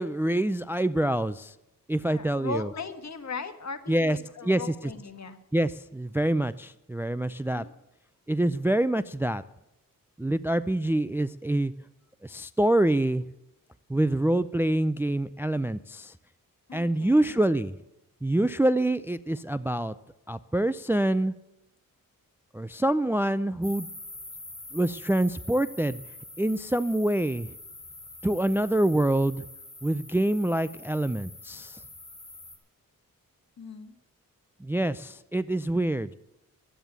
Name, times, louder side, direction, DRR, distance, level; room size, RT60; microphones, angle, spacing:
voice 1, 0.0-1.5 1.9-2.7 3.9-4.2 4.4-4.6 5.5-7.6 8.3-9.4 10.2-11.7 12.2-13.2 13.9-16.1 16.7-17.7 18.2-19.9 20.3-21.3 22.5-23.9 24.7-26.0 26.4-27.5 28.2-29.5 29.8-31.8 34.6-36.1, right 1 dB, 5° right, 13 dB, 0.4 m, -26 dB
voice 2, 2.0-5.4 7.5-7.7 16.7-17.4 33.6-33.9, left 4 dB, 50° left, 8 dB, 1.6 m, -38 dB
sound 1, 23.6-32.6, left 2 dB, 20° left, 2.7 m, -45 dB
12.5 x 8.9 x 8.1 m, 0.88 s
wide cardioid pair, 80°, 34 cm